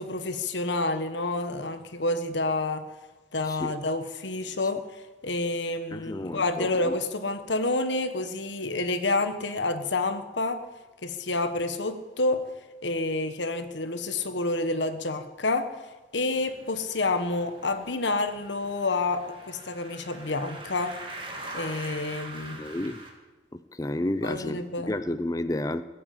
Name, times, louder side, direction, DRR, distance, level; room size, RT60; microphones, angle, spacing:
voice 1, 0.0-2.8 3.3-4.8 5.2-10.6 11.0-12.5 12.8-15.7 16.1-20.9 21.5-22.6 24.2-24.9, left 2 dB, 85° left, 9 dB, 1.4 m, -28 dB
voice 2, 5.9-6.9 22.6-23.0 23.5-24.6 24.9-25.8, left 1 dB, 20° left, 12 dB, 0.6 m, -31 dB
sound 1, 16.3-23.1, right 2 dB, 30° right, 2.3 m, -43 dB
19.5 x 8.6 x 8.6 m, 1.2 s
head